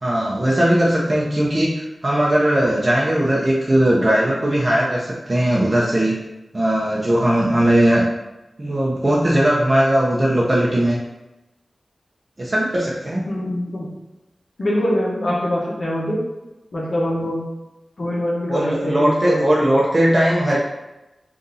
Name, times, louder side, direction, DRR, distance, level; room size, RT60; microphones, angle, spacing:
voice 1, 0.0-6.2 6.5-8.1 8.6-11.0 12.4-13.2 18.5-20.6, right 1 dB, 40° right, -5 dB, 0.7 m, -18 dB
voice 2, 13.3-13.9 14.6-16.2 16.7-17.4 18.0-19.8, equal, 60° left, -5 dB, 1.0 m, -23 dB
3.9 x 2.6 x 3.9 m, 0.99 s
wide cardioid pair, 55°, 0 cm